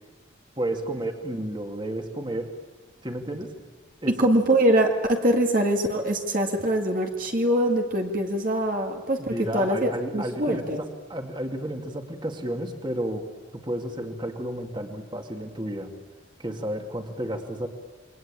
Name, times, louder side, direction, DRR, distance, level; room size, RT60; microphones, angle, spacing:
voice 1, 0.6-2.6 3.0-3.5 4.0-4.2 9.2-13.3 13.5-15.9 16.4-17.7, right 1 dB, 25° right, 4 dB, 2.2 m, -32 dB
voice 2, 4.1-10.8, right 1 dB, 45° right, 2 dB, 2.0 m, -23 dB
28.0 x 23.5 x 8.9 m, 1.4 s
head